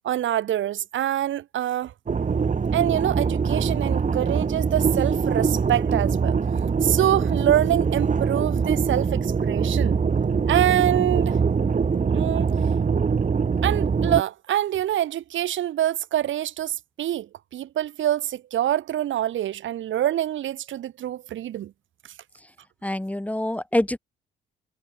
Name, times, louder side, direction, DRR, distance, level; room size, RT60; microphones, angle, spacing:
voice 1, 0.0-1.9 2.7-6.4 6.8-9.9 10.5-11.4 12.1-12.5 13.6-21.7, right 12 dB, 75° right, 5.0 m, -25 dB
sound 1, 2.1-14.2, right 5 dB, 40° right, 5.2 m, -23 dB
voice 2, 22.8-24.0, left 1 dB, 5° left, 4.3 m, -25 dB
cardioid pair, 90°, 20 cm